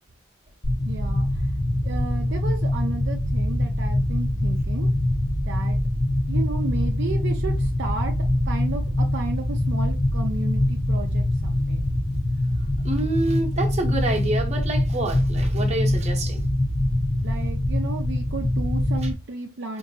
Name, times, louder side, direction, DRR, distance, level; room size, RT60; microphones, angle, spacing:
sound 1, 0.6-19.1, left 1 dB, 25° left, 0.7 m, -24 dB
voice 1, 0.8-1.5 1.8-4.9 5.5-5.8 6.3-8.1 8.5-11.8 17.2-19.8, right 3 dB, 55° right, 0.5 m, -33 dB
voice 2, 12.8-16.4 19.0-19.1 19.7-19.8, right 2 dB, 30° right, 0.9 m, -27 dB
4.9 x 2.6 x 2.7 m
head